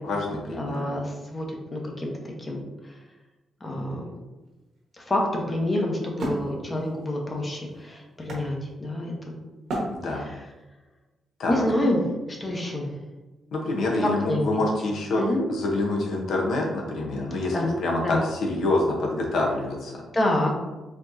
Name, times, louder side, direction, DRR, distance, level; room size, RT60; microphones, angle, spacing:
voice 1, 0.0-0.9 9.9-10.3 11.4-11.6 13.5-15.2 15.5-19.9, left 2 dB, 75° left, -1 dB, 0.8 m, -26 dB
voice 2, 0.5-1.5 1.7-2.1 2.4-2.6 3.6-4.1 5.0-9.4 10.1-10.4 11.5-12.9 14.0-14.4 15.2-15.5 17.5-17.7 18.0-18.3 20.1-20.5, left 1 dB, 25° left, 0 dB, 0.8 m, -27 dB
Wood, 4.4-9.1 9.7-10.6, right 1 dB, 70° right, 1.2 m, -35 dB
4.3 x 2.9 x 2.6 m, 1.1 s
cardioid pair, 110°, 0 cm